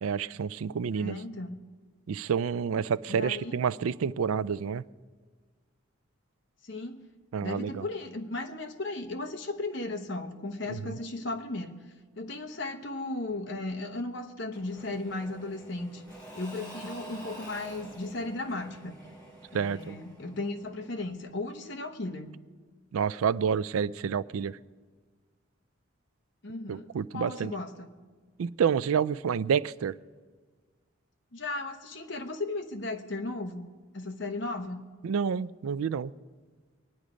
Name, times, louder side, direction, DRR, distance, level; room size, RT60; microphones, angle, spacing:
voice 1, 0.0-1.2 2.1-4.8 7.3-7.8 10.7-10.9 19.5-20.0 22.9-24.6 26.7-27.5 28.4-30.0 35.0-36.1, right 7 dB, 85° right, 18 dB, 0.4 m, -29 dB
voice 2, 1.0-1.6 3.1-3.6 6.6-7.0 7.4-11.8 12.2-16.0 16.3-19.0 19.5-22.3 26.4-26.9 27.1-27.9 31.3-33.7 33.9-34.9, left 2 dB, 60° left, 7 dB, 1.0 m, -36 dB
Engine / Mechanisms / Drill, 14.5-21.2, right 1 dB, 5° left, 5.3 m, -48 dB
22.5 x 9.6 x 5.1 m, 1.5 s
head